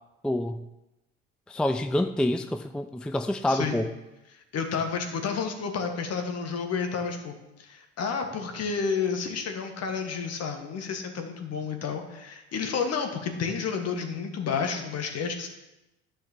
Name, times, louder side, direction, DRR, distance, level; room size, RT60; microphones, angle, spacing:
voice 1, 0.2-0.6 1.5-3.9, left 1 dB, 5° left, 8 dB, 0.4 m, -27 dB
voice 2, 3.5-3.8 4.5-15.5, left 5 dB, 55° left, 5 dB, 1.6 m, -30 dB
10.5 x 3.9 x 7.1 m, 0.98 s
hypercardioid pair, 60°, 31 cm